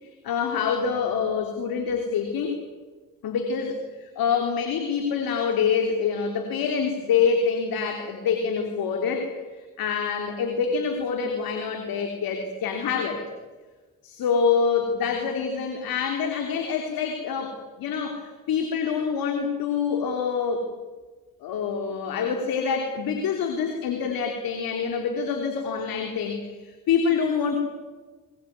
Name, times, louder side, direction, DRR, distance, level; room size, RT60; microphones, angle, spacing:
voice 1, 0.0-2.6 3.2-13.2 14.0-20.7 21.4-27.6, left 6 dB, 85° left, 4 dB, 3.3 m, -26 dB
22.5 x 22.0 x 9.5 m, 1.3 s
supercardioid pair, 50°, 35 cm